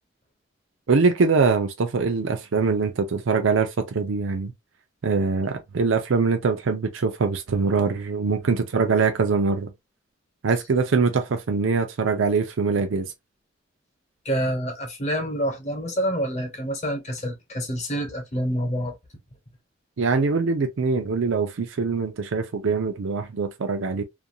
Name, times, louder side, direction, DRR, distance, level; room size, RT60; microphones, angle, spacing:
voice 1, 0.9-4.5 5.0-9.7 10.4-13.1 20.0-24.0, right 4 dB, 80° right, 0.5 m, -23 dB
voice 2, 14.2-18.9, equal, 35° left, 0.9 m, -27 dB
2.5 x 2.2 x 2.7 m
head